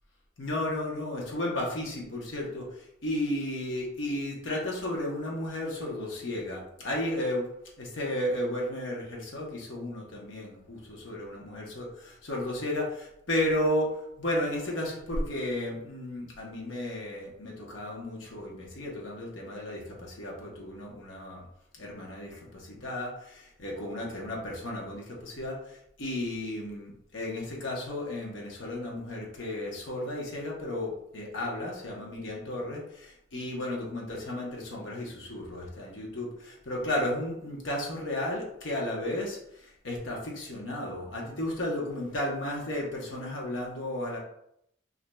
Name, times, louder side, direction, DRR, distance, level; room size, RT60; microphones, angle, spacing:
voice 1, 0.4-7.5 7.8-21.4 21.8-44.2, left 1 dB, 65° left, -2 dB, 1.0 m, -33 dB
5.7 x 2.7 x 2.3 m, 0.76 s
head